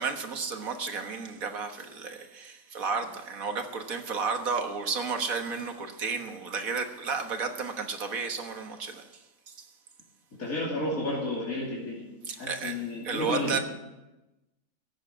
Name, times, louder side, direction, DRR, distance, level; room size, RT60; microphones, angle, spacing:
voice 1, 0.0-9.1 9.5-9.7 12.3-12.7 13.0-13.6, right 5 dB, 80° right, 1.8 m, -32 dB
voice 2, 10.4-12.0 12.4-13.6, left 1 dB, 85° left, 3.1 m, -31 dB
16.5 x 7.4 x 8.8 m
omnidirectional pair, 1.4 m